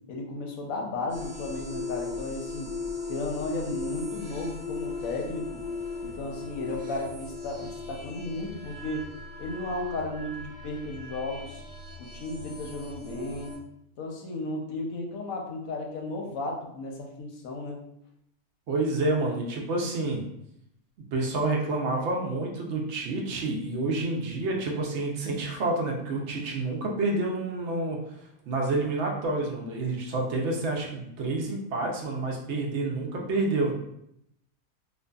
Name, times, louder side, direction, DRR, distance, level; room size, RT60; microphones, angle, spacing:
voice 1, 0.1-2.7 3.1-5.6 6.0-9.1 9.4-11.6 12.0-13.5 14.0-17.8, left 2 dB, 70° left, 1 dB, 0.9 m, -34 dB
sound 1, 1.1-13.6, left 3 dB, 20° right, 0.8 m, -38 dB
voice 2, 18.7-20.2 21.1-28.0 28.5-33.7, right 2 dB, 65° right, 0 dB, 0.7 m, -28 dB
2.5 x 2.5 x 2.2 m, 0.76 s
omnidirectional pair, 1.6 m